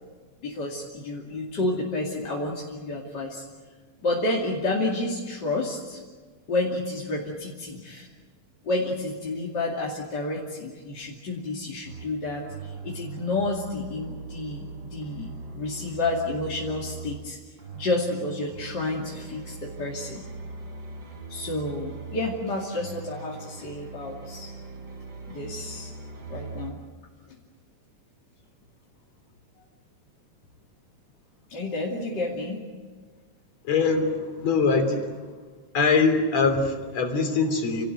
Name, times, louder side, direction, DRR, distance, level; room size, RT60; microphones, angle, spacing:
voice 1, 0.4-3.4 4.0-6.0 6.5-8.1 8.6-17.4 17.7-20.2 21.3-24.5 25.3-25.9 26.3-26.8 27.3-27.4 31.5-32.6, left 2 dB, 35° left, -4 dB, 3.0 m, -30 dB
sound 1, 11.8-12.1 12.4-17.3 17.6-26.7, right 4 dB, 40° right, 3.8 m, -41 dB
voice 2, 33.6-35.2 35.7-37.9, left 4 dB, 60° left, 5 dB, 4.4 m, -23 dB
29.5 x 18.5 x 9.1 m, 1.5 s
omnidirectional pair, 3.4 m